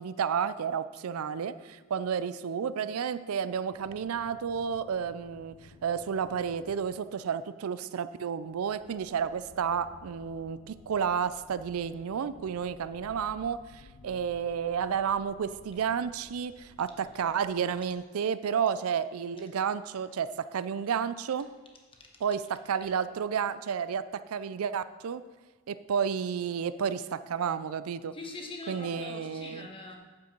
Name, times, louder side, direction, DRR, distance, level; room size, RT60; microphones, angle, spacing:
voice 1, 0.0-5.6 5.8-21.5 22.2-25.2 25.7-28.2 28.7-29.7, right 7 dB, 80° right, 14 dB, 0.4 m, -31 dB
sound 1, 3.7-7.4 8.4-18.0, left 3 dB, 85° left, 0.7 m, -56 dB
voice 2, 28.1-30.0, left 2 dB, 25° left, 1 dB, 1.3 m, -42 dB
8.7 x 7.1 x 4.5 m, 1.3 s
head